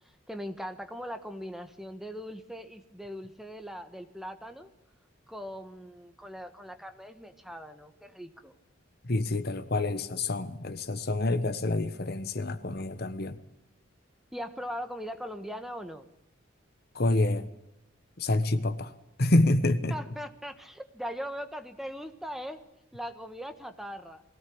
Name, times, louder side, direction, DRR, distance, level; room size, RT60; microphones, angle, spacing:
voice 1, 0.3-4.7 5.3-8.5 14.3-16.1 19.9-22.6 22.9-24.2, equal, ahead, 1.4 m, -40 dB
voice 2, 9.0-13.4 16.9-17.5 18.2-18.9 19.2-20.0, left 2 dB, 50° left, 1.3 m, -27 dB
22.0 x 17.0 x 8.7 m
head